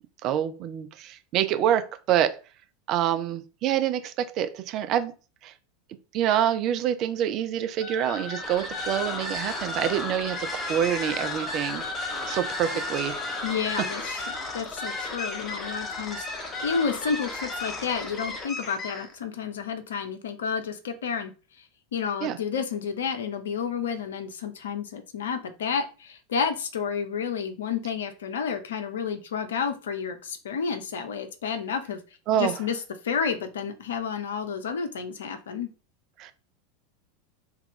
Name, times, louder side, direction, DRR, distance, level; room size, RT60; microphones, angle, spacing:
voice 1, 0.2-2.4 2.9-5.1 5.4-5.5 6.1-11.8 12.3-13.2 22.2-22.4 32.3-32.5 36.2-36.3, right 10 dB, 45° right, 0.4 m, -26 dB
sound 1, 7.8-19.2, left 2 dB, 25° left, 0.8 m, -33 dB
voice 2, 13.4-14.3 14.5-16.3 16.6-21.3 21.9-32.0 32.3-32.8 33.0-35.7, left 6 dB, 70° left, 0.5 m, -30 dB
2.9 x 2.3 x 3.6 m
figure-of-eight pair, 85°, 0 cm